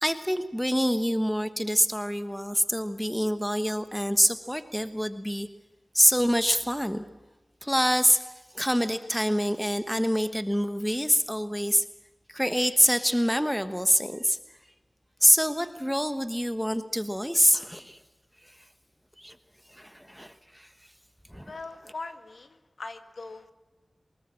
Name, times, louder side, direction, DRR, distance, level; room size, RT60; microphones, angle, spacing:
voice 1, 0.0-5.5 5.9-7.0 7.6-8.3 8.5-11.8 12.3-14.4 15.2-18.0 19.2-19.3 19.8-20.7 21.3-21.5, equal, ahead, 10 dB, 1.3 m, -25 dB
voice 2, 21.5-23.5, left 3 dB, 85° left, 9 dB, 1.8 m, -41 dB
24.0 x 20.5 x 7.4 m, 1.1 s
wide cardioid pair, 65°, 0 cm